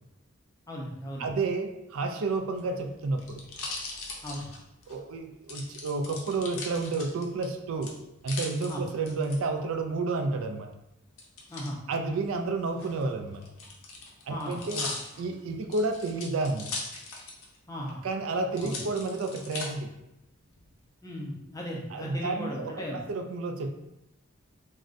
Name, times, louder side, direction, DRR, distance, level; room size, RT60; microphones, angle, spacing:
voice 1, 0.7-1.3 4.2-4.5 8.7-8.8 11.5-11.8 14.3-14.9 17.7-18.0 18.6-18.8 21.0-23.0, equal, 15° left, -2 dB, 0.4 m, -36 dB
voice 2, 1.2-3.4 4.9-7.9 8.2-10.7 11.9-13.4 14.3-14.8 15.2-16.7 18.0-19.9 21.9-23.7, right 3 dB, 80° right, 5 dB, 0.3 m, -31 dB
sound 1, 2.4-5.0 5.5-7.4 7.8-9.4 11.2-11.7 12.7-17.6 17.9-18.0 18.5-19.7 20.3-20.8, left 3 dB, 85° left, 0.6 m, -39 dB
3.6 x 2.1 x 2.5 m, 0.89 s
head